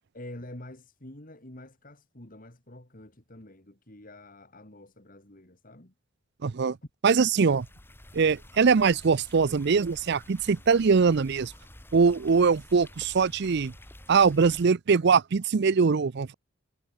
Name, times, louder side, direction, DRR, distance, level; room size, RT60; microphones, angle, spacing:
voice 1, 0.1-5.9, left 1 dB, 40° left, 3.0 m, -47 dB
voice 2, 6.4-6.8 7.0-7.7 8.1-11.5 11.9-13.7 14.1-16.3, right 5 dB, 50° right, 0.5 m, -22 dB
sound 1, 7.2-14.7, left 1 dB, 10° left, 1.8 m, -50 dB
head